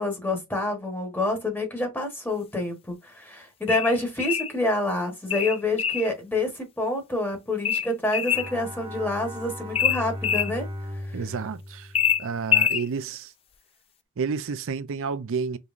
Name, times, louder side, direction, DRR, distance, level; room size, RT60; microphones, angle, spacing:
voice 1, 0.0-10.7 11.1-11.2, left 2 dB, 10° left, 1.1 m, -27 dB
sound 1, 3.7-4.5 5.3-6.1 7.6-8.5 9.7-10.5 11.9-12.8, left 8 dB, 25° left, 0.3 m, -24 dB
Bowed string instrument, 8.3-12.7, left 1 dB, 20° right, 0.9 m, -37 dB
voice 2, 11.1-11.9 12.2-13.3 14.2-15.6, right 5 dB, 60° right, 0.5 m, -30 dB
5.2 x 3.0 x 2.5 m
head